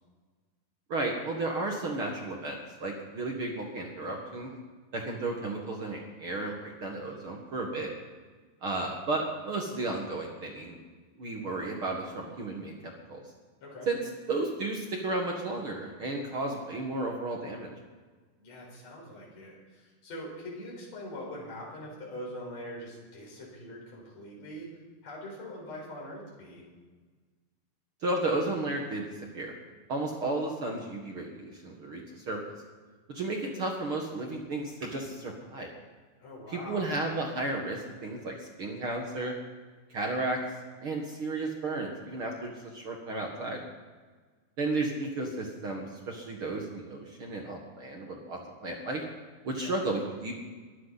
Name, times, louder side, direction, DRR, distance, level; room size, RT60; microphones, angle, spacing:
voice 1, 0.9-4.5 4.9-7.9 8.6-10.8 11.2-13.2 13.8-14.0 14.3-17.7 28.0-29.5 29.9-32.4 33.1-35.7 36.5-39.3 39.9-40.4 40.8-43.6 44.6-49.0 49.4-50.3, right 2 dB, 50° right, 1 dB, 1.6 m, -33 dB
voice 2, 18.4-24.7 25.0-26.7 36.2-36.9 49.5-49.8, left 1 dB, 40° left, -3 dB, 5.9 m, -43 dB
23.5 x 13.5 x 4.1 m, 1.4 s
omnidirectional pair, 4.6 m